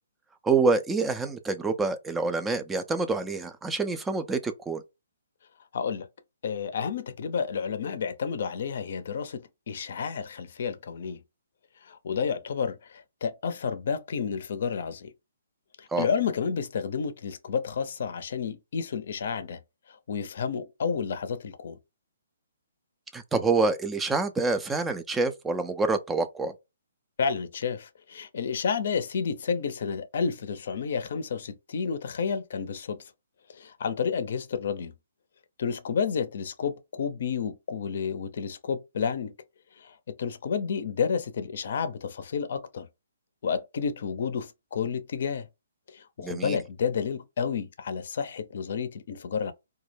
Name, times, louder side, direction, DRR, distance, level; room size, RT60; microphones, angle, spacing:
voice 1, 0.4-4.8 15.9-16.1 23.1-26.5 46.2-46.6, right 4 dB, 10° right, 0.3 m, -27 dB
voice 2, 5.7-6.1 6.4-11.2 11.9-15.1 15.8-19.6 20.1-21.8 27.2-33.0 33.6-34.9 35.6-39.3 39.8-39.9 40.2-42.9 43.4-45.5 45.9-49.5, left 6 dB, 60° left, 0.5 m, -30 dB
2.2 x 2.0 x 3.2 m
hypercardioid pair, 145°, 0 cm